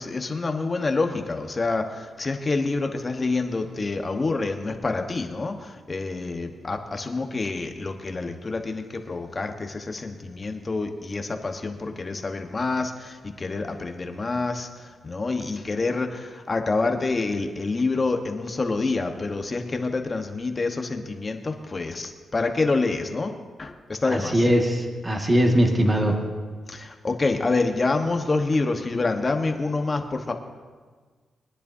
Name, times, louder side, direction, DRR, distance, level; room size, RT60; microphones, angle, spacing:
voice 1, 0.0-23.3 23.6-24.5 26.7-30.3, left 3 dB, 35° left, 5 dB, 1.2 m, -27 dB
voice 2, 24.1-26.2, equal, 20° right, 1 dB, 1.8 m, -21 dB
22.5 x 10.0 x 2.8 m, 1.5 s
cardioid pair, 85°, 0 cm